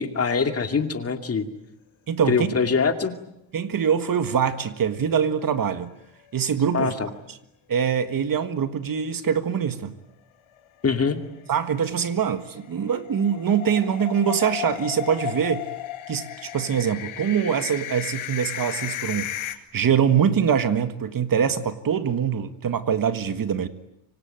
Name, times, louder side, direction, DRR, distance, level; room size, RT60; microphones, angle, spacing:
voice 1, 0.0-1.5 2.3-3.1 6.7-7.1 10.8-11.2, left 5 dB, 30° left, 2.5 m, -23 dB
voice 2, 2.1-2.5 2.8-2.9 3.5-5.9 6.3-6.9 7.7-9.9 11.5-15.7 16.1-23.7, right 7 dB, 40° right, 1.7 m, -24 dB
sound 1, 4.6-5.5 5.9-6.0 6.3-6.4 10.5-19.6, left 13 dB, 75° left, 2.5 m, -35 dB
25.5 x 25.0 x 9.0 m
cardioid pair, 135°, 49 cm